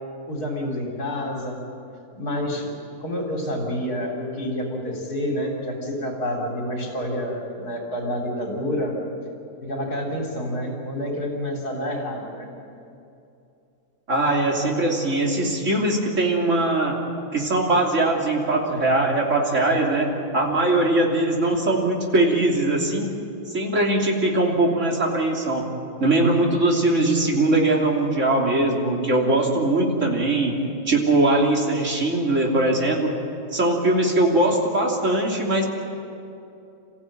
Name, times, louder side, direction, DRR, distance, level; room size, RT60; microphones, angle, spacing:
voice 1, 0.3-1.6 2.1-9.0 9.6-12.5, equal, 80° left, -1 dB, 4.2 m, -28 dB
voice 2, 14.1-17.0 17.3-23.1 23.5-25.7 26.0-30.6 30.9-33.1 33.5-35.7, right 2 dB, 50° right, -1 dB, 3.5 m, -21 dB
27.5 x 15.5 x 9.1 m, 2.6 s
omnidirectional pair, 1.6 m